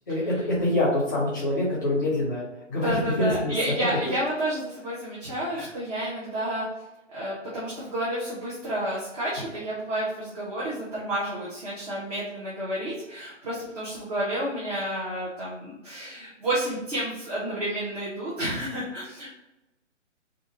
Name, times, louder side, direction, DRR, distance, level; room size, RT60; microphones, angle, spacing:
voice 1, 0.1-2.4 2.7-3.5 5.5-5.7, left 1 dB, 15° left, -5 dB, 0.8 m, -25 dB
voice 2, 2.8-6.6 7.1-19.3, right 1 dB, 30° right, -8 dB, 1.3 m, -30 dB
4.3 x 2.6 x 4.4 m, 0.99 s
hypercardioid pair, 170°, 37 cm